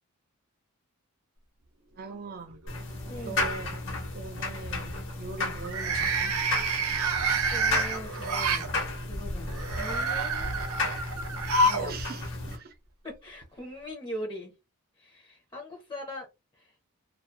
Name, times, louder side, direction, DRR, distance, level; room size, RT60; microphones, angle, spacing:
voice 1, 2.0-2.6 3.1-3.8 4.1-6.3 11.8-12.8, right 3 dB, 40° right, 0.4 m, -41 dB
sound 1, 2.1-2.7 3.1-3.5 5.6-8.7 9.5-11.9 12.2-12.3 13.4-13.5, right 3 dB, 80° right, 0.7 m, -28 dB
sound 2, 2.7-12.6, left 2 dB, 55° left, 1.0 m, -34 dB
voice 2, 3.1-3.5 7.1-8.7 9.0-10.5 11.6-12.0 12.3-12.4 13.0-14.5 15.0-16.3 16.5-16.8, left 1 dB, 20° left, 0.6 m, -41 dB
2.4 x 2.3 x 2.6 m
head